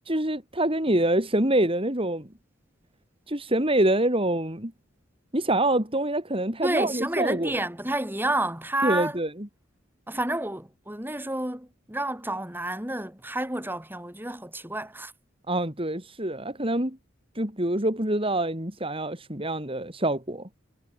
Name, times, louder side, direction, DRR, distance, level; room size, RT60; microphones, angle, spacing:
voice 1, 0.1-2.3 3.3-4.7 5.3-7.5 8.8-9.5 15.5-17.0 17.4-20.5, right 1 dB, 25° right, 5.2 m, -25 dB
voice 2, 6.6-9.2 10.1-15.1, right 1 dB, 10° right, 7.3 m, -30 dB
head